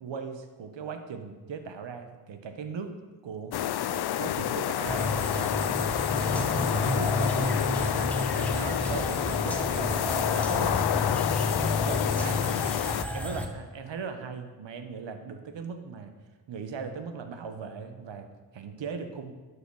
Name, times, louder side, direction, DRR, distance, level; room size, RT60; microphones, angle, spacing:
voice 1, 0.0-3.0 3.2-3.6 3.9-5.9 6.3-10.9 11.6-12.7 13.1-16.1 16.5-19.3, right 5 dB, 65° right, 8 dB, 1.1 m, -39 dB
sound 1, 3.5-13.1, left 11 dB, 55° left, 0.5 m, -29 dB
sound 2, 4.8-13.5, left 2 dB, 5° left, 1.3 m, -30 dB
11.0 x 5.0 x 4.8 m, 1.3 s
supercardioid pair, 40°, 47 cm